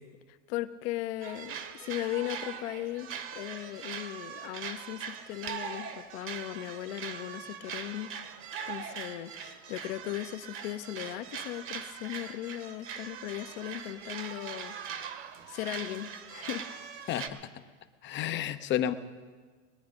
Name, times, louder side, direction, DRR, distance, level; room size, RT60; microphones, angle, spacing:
voice 1, 0.3-8.1 8.7-15.2 15.5-16.6 17.0-17.1 18.1-18.2, left 15 dB, 55° left, 11 dB, 1.0 m, -38 dB
sound 1, 1.2-17.3, right 7 dB, 30° right, 1.2 m, -41 dB
voice 2, 17.1-17.4 18.0-18.9, left 11 dB, 30° left, 11 dB, 0.7 m, -30 dB
21.5 x 9.5 x 5.2 m, 1.5 s
hypercardioid pair, 120°, 39 cm